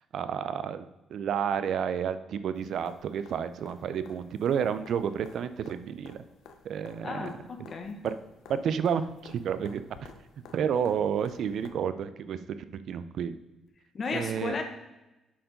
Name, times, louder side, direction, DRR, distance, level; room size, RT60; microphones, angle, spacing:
voice 1, 0.1-6.2 6.6-7.3 7.6-7.7 8.0-8.1 8.5-10.1 10.5-13.4 14.1-14.6, right 8 dB, 70° right, 12 dB, 0.4 m, -31 dB
sound 1, 2.5-11.7 13.7-13.8, left 6 dB, 85° left, 0.8 m, -54 dB
voice 2, 7.0-8.0 13.9-14.6, left 4 dB, 45° left, 6 dB, 1.1 m, -34 dB
7.3 x 4.8 x 5.2 m, 1.0 s
cardioid pair, 90°, 0 cm